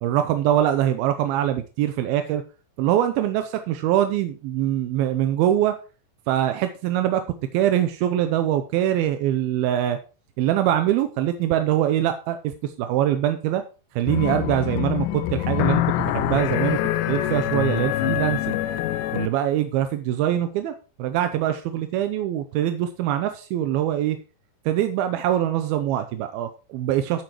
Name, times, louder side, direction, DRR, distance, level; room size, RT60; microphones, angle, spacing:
voice 1, 0.0-2.4 2.8-5.8 6.3-7.2 7.5-10.0 10.4-13.6 14.0-16.8 17.1-18.6 19.1-24.2 24.7-27.2, right 11 dB, 80° right, 8 dB, 2.3 m, -23 dB
sound 1, 14.1-19.3, left 14 dB, 90° left, 2.9 m, -25 dB
12.5 x 9.3 x 3.1 m, 0.34 s
omnidirectional pair, 5.0 m